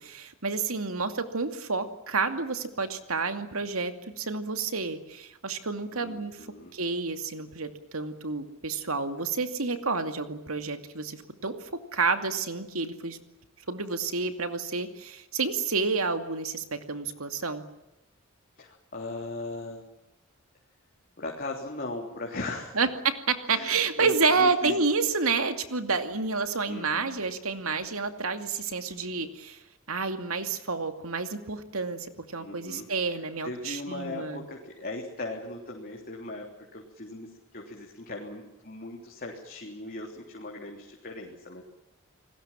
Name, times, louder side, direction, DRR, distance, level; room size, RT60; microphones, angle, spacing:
voice 1, 0.0-6.4 6.7-11.6 11.9-13.2 13.7-17.6 22.8-29.6 29.9-34.4, right 4 dB, 80° right, 8 dB, 2.5 m, -29 dB
voice 2, 5.9-6.8 18.6-19.9 21.2-22.8 23.5-24.8 26.7-27.2 32.4-41.6, left 2 dB, 45° left, 0 dB, 3.5 m, -39 dB
29.5 x 20.5 x 7.5 m, 0.93 s
head